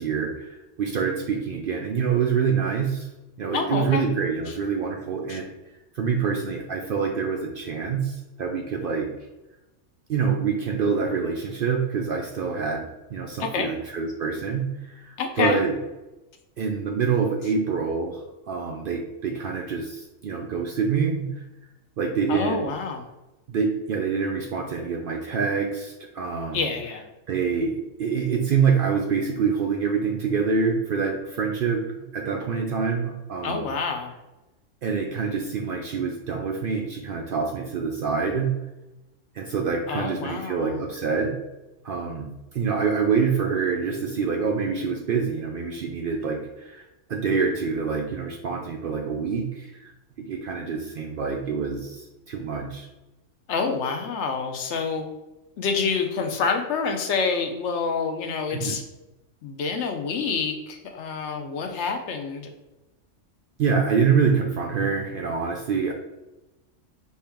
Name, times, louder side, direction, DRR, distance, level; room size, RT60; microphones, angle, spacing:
voice 1, 0.0-3.1 3.4-5.4 5.9-9.1 10.1-15.7 16.6-21.4 22.0-22.7 23.5-26.7 27.3-33.7 34.8-38.5 39.3-41.4 41.8-42.3 42.5-49.9 50.2-52.9 58.5-58.8 63.6-65.9, right 5 dB, 60° right, 1 dB, 0.6 m, -26 dB
voice 2, 3.5-4.0 5.3-5.4 13.4-13.7 15.2-15.6 22.3-23.0 26.5-27.0 33.4-34.1 39.9-40.8 53.5-55.1 55.6-58.8 59.4-62.5, left 5 dB, 70° left, 5 dB, 0.9 m, -27 dB
4.5 x 2.8 x 3.5 m, 1.0 s
omnidirectional pair, 1.3 m